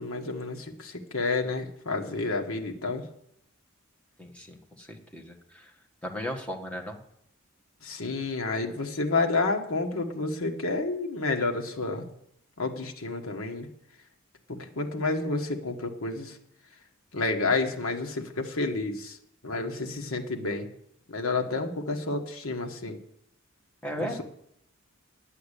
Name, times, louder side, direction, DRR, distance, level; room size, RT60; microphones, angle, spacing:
voice 1, 0.0-3.0 7.8-12.1 12.6-13.7 14.5-16.4 17.1-19.2 19.4-20.7 21.1-23.0 24.0-24.2, left 3 dB, 85° left, 3 dB, 1.5 m, -30 dB
voice 2, 4.2-7.0 23.8-24.2, equal, 5° left, 0 dB, 1.6 m, -37 dB
10.0 x 8.2 x 8.4 m, 0.75 s
head